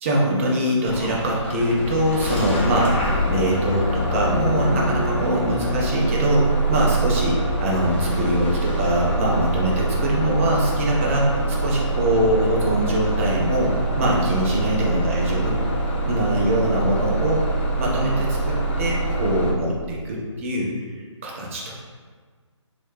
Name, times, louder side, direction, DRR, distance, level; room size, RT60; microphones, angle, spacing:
voice 1, 0.0-3.0 3.3-15.6 16.1-17.4 17.8-20.7 21.2-21.7, right 1 dB, 25° right, -3 dB, 0.6 m, -23 dB
Bus / Engine starting, 0.9-19.5, right 2 dB, 25° left, 0.4 m, -24 dB
3.0 x 2.9 x 3.2 m, 1.5 s
figure-of-eight pair, 145°, 16 cm